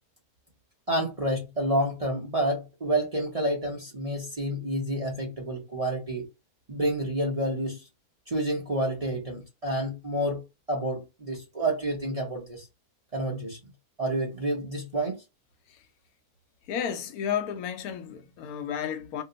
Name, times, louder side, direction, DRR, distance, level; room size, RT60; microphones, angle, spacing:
voice 1, 0.9-6.2 6.7-7.8 8.3-10.4 10.7-12.7 13.1-13.6 14.0-15.2, right 1 dB, 30° right, 0.7 m, -29 dB
voice 2, 16.7-19.2, left 8 dB, 75° left, 1.1 m, -32 dB
2.9 x 2.1 x 3.7 m
omnidirectional pair, 1.6 m